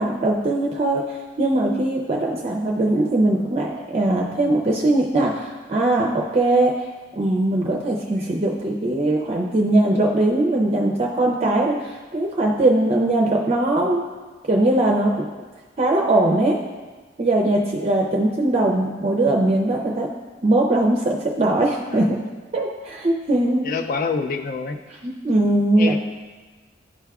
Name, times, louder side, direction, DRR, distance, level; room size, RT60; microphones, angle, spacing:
voice 1, 0.0-6.7 7.1-14.0 14.5-15.3 15.8-16.6 17.2-20.1 20.4-22.2 22.5-23.7 25.0-26.0, right 2 dB, 35° right, -1 dB, 0.5 m, -20 dB
voice 2, 23.6-24.8 25.8-26.0, left 4 dB, 50° left, 7 dB, 0.3 m, -26 dB
11.0 x 4.7 x 2.3 m, 1.3 s
head